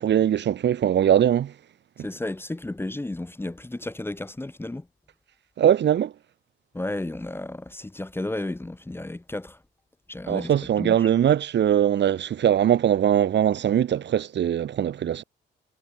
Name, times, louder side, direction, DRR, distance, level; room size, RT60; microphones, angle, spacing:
voice 1, 0.0-1.6 5.6-6.1 10.3-15.2, right 10 dB, 65° right, 2.5 m, -21 dB
voice 2, 2.0-4.9 6.7-9.6 10.1-10.5 10.8-11.1, left 2 dB, 10° left, 1.5 m, -33 dB
cardioid pair, 90°, 20 cm